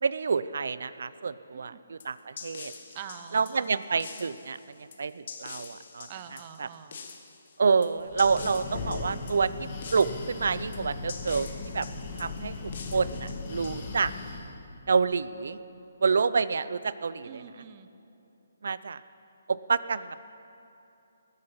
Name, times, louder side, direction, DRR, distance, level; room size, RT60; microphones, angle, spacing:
voice 1, 0.0-2.7 3.3-6.7 7.6-11.5 11.7-11.9 12.2-14.1 14.9-15.6 16.0-17.4 18.6-19.0 19.5-20.2, right 5 dB, 70° right, 16 dB, 0.6 m, -28 dB
sound 1, 2.0-14.2, left 5 dB, 55° left, 1.4 m, -46 dB
voice 2, 2.9-3.7 6.1-7.0 17.2-17.9, right 9 dB, 35° right, 10 dB, 0.8 m, -45 dB
Breathing, 8.0-14.6, left 4 dB, 40° left, 1.8 m, -38 dB
19.5 x 9.8 x 5.8 m, 2.8 s
hypercardioid pair, 155°, 0 cm